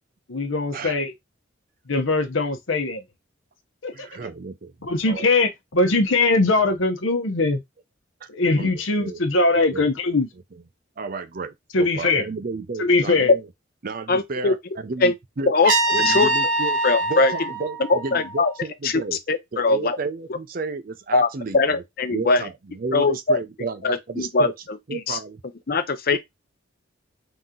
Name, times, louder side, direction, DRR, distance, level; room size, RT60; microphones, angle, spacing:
voice 1, 0.3-1.1 1.9-3.0 3.8-4.1 4.8-7.6 8.3-10.3 11.7-12.3 12.8-13.3, left 3 dB, 80° left, 0.9 m, -21 dB
voice 2, 3.9-4.7 5.1-5.2 8.2-8.3 8.6-8.7 9.0-9.2 9.7-9.9 11.0-13.4 13.8-15.5 15.9-16.8 17.1-19.2 19.5-21.8 22.1-24.5 24.9-25.4 26.1-26.2, right 3 dB, 45° right, 0.5 m, -32 dB
voice 3, 14.1-14.5 15.0-15.1 15.5-16.3 16.8-17.3 17.9-18.5 18.8-19.0 19.3-20.0 21.1-22.4 22.9-23.4 23.8-25.2 25.7-26.2, left 3 dB, 50° left, 0.6 m, -21 dB
Trumpet, 15.6-18.6, right 2 dB, 70° right, 0.9 m, -24 dB
3.9 x 2.9 x 3.8 m
head